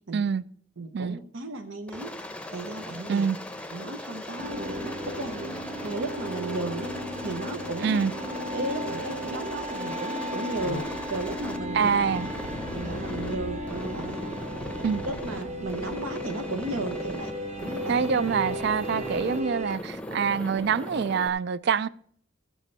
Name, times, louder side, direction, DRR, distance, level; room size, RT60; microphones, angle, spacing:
voice 1, 0.1-0.4 0.9-1.2 3.1-3.4 7.8-8.1 11.7-12.3 14.8-15.0 17.9-21.9, right 6 dB, 55° right, 0.3 m, -25 dB
voice 2, 0.8-3.3 3.7-6.9 7.2-8.0 8.5-11.9 12.7-14.4 15.0-18.1, right 2 dB, 80° right, 0.9 m, -35 dB
Aircraft, 1.9-13.4 13.7-15.4 15.7-17.3 17.6-19.4 19.7-21.3, left 1 dB, 5° left, 0.7 m, -39 dB
sound 1, 4.4-19.8, equal, 35° right, 1.3 m, -35 dB
sound 2, 10.5-16.2, left 4 dB, 65° left, 0.5 m, -43 dB
15.0 x 7.2 x 4.1 m
head